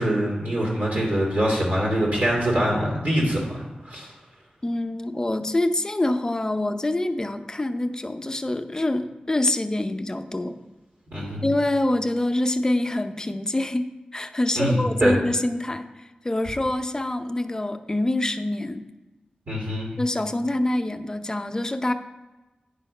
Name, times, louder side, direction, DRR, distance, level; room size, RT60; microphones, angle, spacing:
voice 1, 0.0-4.1 11.1-11.5 14.6-15.2 19.5-19.9, equal, 70° right, -5 dB, 2.6 m, -24 dB
voice 2, 4.6-10.6 11.4-15.9 16.2-18.9 20.0-21.9, left 1 dB, 20° left, 7 dB, 0.6 m, -25 dB
9.7 x 4.3 x 5.5 m, 1.1 s
wide cardioid pair, 90°, 3 cm